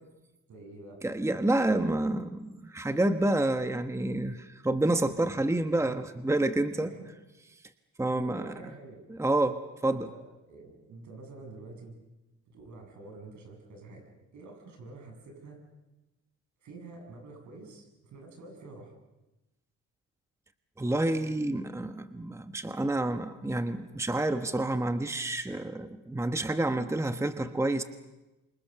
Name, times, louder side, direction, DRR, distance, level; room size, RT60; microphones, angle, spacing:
voice 1, 0.5-1.0 5.2-5.4 5.8-5.9 6.7-7.1 8.0-9.0 9.9-12.0 12.5-14.0 14.3-15.6 16.6-18.9, right 2 dB, 75° right, 2 dB, 7.9 m, -48 dB
voice 2, 1.0-6.9 8.0-8.5 9.1-10.1 20.8-27.8, right 2 dB, 10° right, 9 dB, 1.2 m, -28 dB
27.5 x 25.5 x 6.8 m, 1.0 s
cardioid pair, 90°, 30 cm